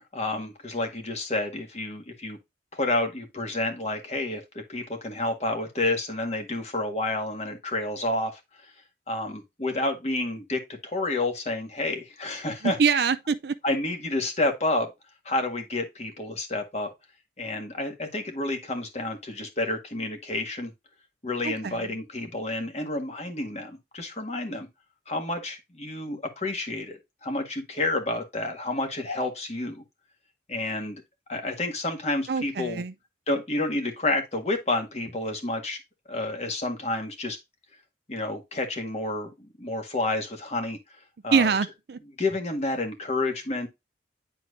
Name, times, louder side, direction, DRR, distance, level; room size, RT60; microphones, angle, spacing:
voice 1, 0.0-2.4 2.7-8.7 9.1-12.8 13.6-14.9 15.2-16.9 17.4-20.7 21.2-24.7 25.1-29.8 30.5-31.0 31.3-32.8 33.3-35.8 36.1-37.4 38.1-40.8 41.2-41.5 42.2-43.7, left 2 dB, 35° left, 1.6 m, -30 dB
voice 2, 12.6-13.6 21.4-21.8 32.3-32.9 41.3-42.0, right 5 dB, 60° right, 0.4 m, -24 dB
9.8 x 4.4 x 2.6 m
head